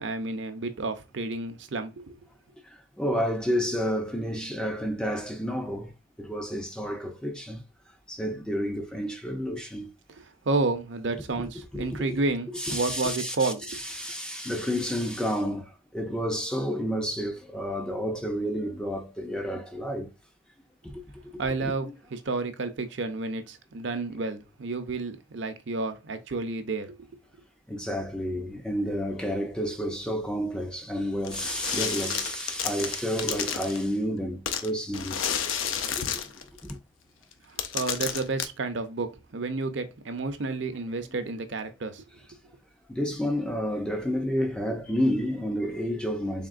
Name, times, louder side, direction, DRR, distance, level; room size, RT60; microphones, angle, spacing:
voice 1, 0.0-2.2 10.1-13.7 21.4-27.1 37.5-42.0, right 3 dB, 65° right, 0.6 m, -31 dB
voice 2, 2.6-5.9 6.2-7.6 8.1-9.9 11.4-12.0 12.5-20.1 20.8-21.0 21.6-21.7 27.7-35.2 35.6-36.1 36.6-36.8 42.9-46.5, equal, 5° left, 0.4 m, -30 dB
sound 1, 31.2-33.8 34.5-36.7 37.3-37.4 37.6-38.5, left 8 dB, 85° left, 0.6 m, -31 dB
3.9 x 3.6 x 2.4 m
head